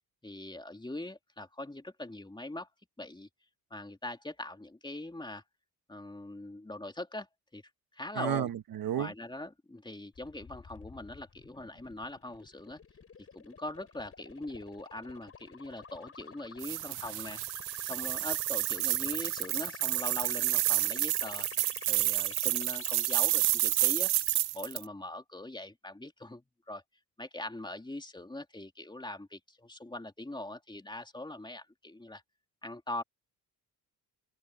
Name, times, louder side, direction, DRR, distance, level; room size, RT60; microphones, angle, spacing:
voice 1, 0.2-2.7 3.0-3.3 3.7-5.4 5.9-7.3 7.5-7.6 7.9-8.5 9.0-12.8 13.3-17.4 17.9-21.5 21.9-24.1 24.5-26.8 27.2-32.2 32.6-33.0, left 1 dB, 10° left, 3.0 m, -42 dB
voice 2, 8.2-9.1, right 10 dB, 60° right, 1.7 m, -32 dB
sound 1, 10.2-24.4, left 5 dB, 35° left, 4.3 m, -48 dB
sound 2, 16.6-24.8, right 19 dB, 80° right, 0.5 m, -30 dB
open air
cardioid pair, 90°, 38 cm